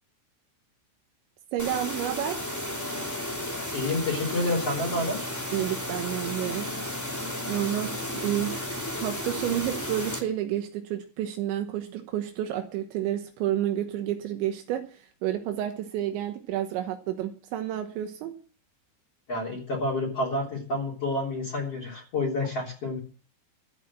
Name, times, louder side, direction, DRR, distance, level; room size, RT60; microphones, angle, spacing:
voice 1, 1.5-2.4 5.5-7.0 7.5-18.3, right 11 dB, 80° right, 5 dB, 3.5 m, -30 dB
sound 1, 1.6-10.2, left 1 dB, 5° left, 1.7 m, -33 dB
voice 2, 3.7-5.3 19.3-23.0, left 2 dB, 35° left, -1 dB, 4.0 m, -29 dB
13.5 x 8.3 x 7.6 m, 0.40 s
omnidirectional pair, 5.2 m